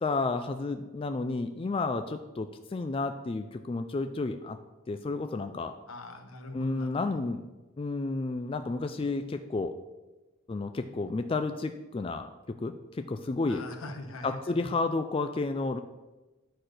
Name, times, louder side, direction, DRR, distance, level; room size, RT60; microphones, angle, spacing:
voice 1, 0.0-4.6 4.9-5.8 6.5-7.5 7.8-9.7 10.5-13.6 14.2-15.8, left 3 dB, 25° left, 8 dB, 0.3 m, -31 dB
voice 2, 5.9-7.2 13.5-14.7, left 2 dB, 85° left, 5 dB, 1.2 m, -42 dB
10.0 x 4.3 x 6.4 m, 1.1 s
head